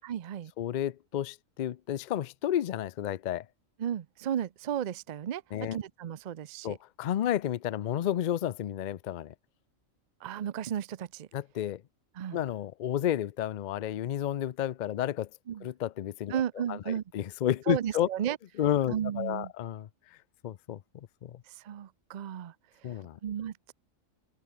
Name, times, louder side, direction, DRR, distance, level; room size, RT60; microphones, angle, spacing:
voice 1, 0.0-0.5 3.8-5.4 5.7-6.8 10.2-11.3 12.2-12.4 15.5-15.7 16.3-17.0 17.7-18.4 18.9-19.5 21.6-22.5 23.2-23.7, right 9 dB, 55° right, 0.4 m, -34 dB
voice 2, 0.6-3.5 5.5-5.8 6.6-9.3 11.3-11.8 12.3-15.3 15.6-16.4 16.7-18.1 18.6-20.2 20.4-21.4 22.8-23.2, left 11 dB, 75° left, 0.4 m, -31 dB
open air
omnidirectional pair, 1.4 m